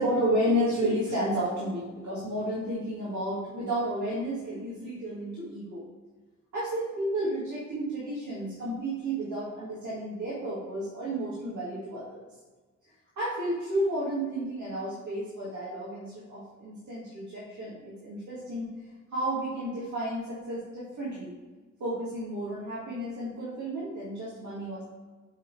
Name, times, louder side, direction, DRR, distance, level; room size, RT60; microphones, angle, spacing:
voice 1, 0.0-5.8 6.5-12.2 13.2-18.7 19.1-21.3 21.8-24.8, right 1 dB, 80° right, -8 dB, 1.7 m, -32 dB
6.7 x 3.6 x 4.6 m, 1.3 s
wide cardioid pair, 100°, 29 cm